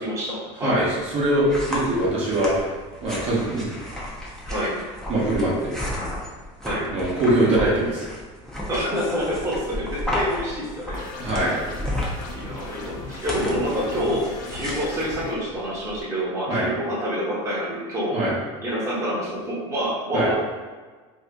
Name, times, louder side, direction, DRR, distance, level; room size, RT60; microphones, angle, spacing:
voice 1, 0.0-0.8 4.5-4.8 6.6-6.9 8.7-11.0 12.3-18.2 18.6-20.4, equal, 20° right, -7 dB, 1.0 m, -27 dB
voice 2, 0.6-2.5 3.0-3.7 5.1-5.8 6.9-8.0 11.2-11.6 16.5-16.7 18.1-18.3 20.1-20.3, right 1 dB, 40° right, -6 dB, 0.9 m, -22 dB
sound 1, 0.7-16.0, left 1 dB, 5° left, 0.6 m, -33 dB
sound 2, 10.9-15.3, left 3 dB, 60° left, 0.7 m, -38 dB
2.7 x 2.5 x 3.4 m, 1.4 s
supercardioid pair, 125°, 16 cm